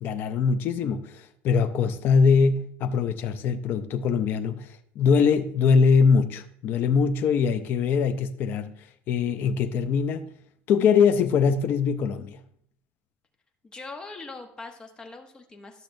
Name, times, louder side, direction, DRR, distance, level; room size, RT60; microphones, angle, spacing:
voice 1, 0.0-8.7 9.1-10.3 10.7-12.4, left 5 dB, 45° left, 0.4 m, -22 dB
voice 2, 13.6-15.8, left 3 dB, 15° left, 0.9 m, -41 dB
12.0 x 6.5 x 2.6 m
cardioid pair, 165°, 5 cm